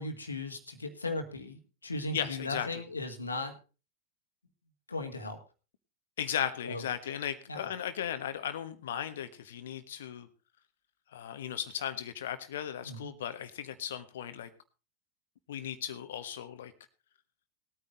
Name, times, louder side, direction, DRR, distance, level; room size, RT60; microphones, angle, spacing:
voice 1, 0.0-3.5 4.9-5.4 6.6-6.8 7.5-7.7 12.8-13.1, left 2 dB, 85° left, 6 dB, 1.8 m, -37 dB
voice 2, 2.1-2.7 6.2-10.3 11.1-14.5 15.5-16.7, left 10 dB, 65° left, 11 dB, 1.2 m, -36 dB
19.0 x 9.3 x 3.9 m, 0.32 s
figure-of-eight pair, 90°, 0 cm